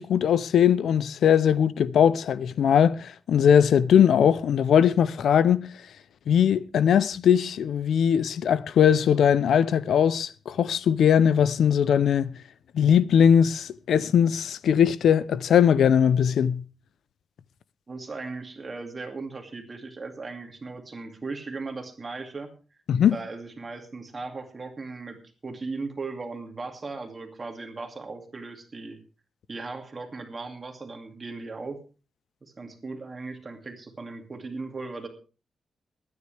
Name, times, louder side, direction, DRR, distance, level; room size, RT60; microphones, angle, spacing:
voice 1, 0.0-5.7 6.3-12.3 12.7-16.6 22.9-23.2, left 8 dB, 90° left, 0.6 m, -20 dB
voice 2, 17.9-22.5 23.1-29.0 29.5-31.8 32.6-35.1, right 3 dB, 30° right, 2.3 m, -37 dB
22.5 x 9.9 x 3.4 m
wide cardioid pair, 140°, 0 cm